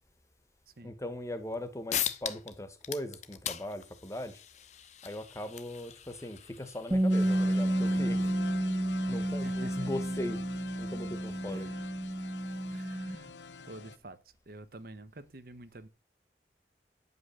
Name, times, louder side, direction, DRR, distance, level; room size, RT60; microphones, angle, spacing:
voice 1, 0.8-4.4 5.0-8.3 8.8-10.4 10.8-11.8 12.4-12.6, left 1 dB, 15° left, 1.0 m, -39 dB
sound 1, 1.5-1.6 1.9-2.5 2.8-8.0, left 10 dB, 40° left, 0.7 m, -39 dB
Bass guitar, 6.9-13.2, right 1 dB, 15° right, 0.4 m, -30 dB
sound 2, 7.1-14.0, left 5 dB, 80° left, 0.6 m, -45 dB
voice 2, 9.4-9.9 11.5-11.8 12.7-13.4 13.7-14.2 14.5-15.9, right 2 dB, 55° right, 0.9 m, -49 dB
9.6 x 5.5 x 6.5 m
head